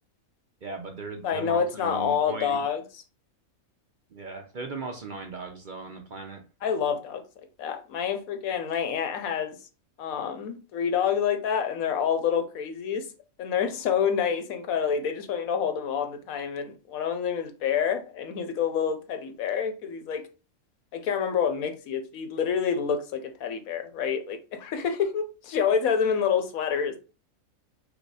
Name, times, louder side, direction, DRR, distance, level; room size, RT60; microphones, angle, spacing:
voice 1, 0.6-2.6 4.1-6.4, right 4 dB, 50° right, 0.6 m, -38 dB
voice 2, 1.2-2.8 6.6-7.2 7.6-9.6 10.0-13.1 13.4-20.3 20.9-27.0, left 7 dB, 80° left, 1.2 m, -27 dB
5.1 x 2.2 x 4.8 m
omnidirectional pair, 1.4 m